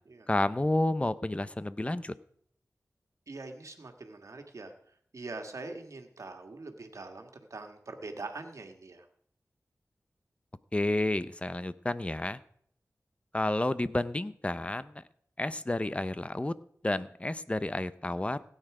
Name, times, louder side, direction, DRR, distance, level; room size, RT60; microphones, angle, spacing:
voice 1, 0.3-2.1 10.7-12.4 13.3-14.9 15.4-16.5 16.8-18.4, left 1 dB, 20° left, 15 dB, 0.6 m, -30 dB
voice 2, 3.3-4.7 5.1-9.1, right 3 dB, 70° right, 5 dB, 1.8 m, -43 dB
16.5 x 9.1 x 4.9 m, 0.64 s
wide cardioid pair, 65°, 6 cm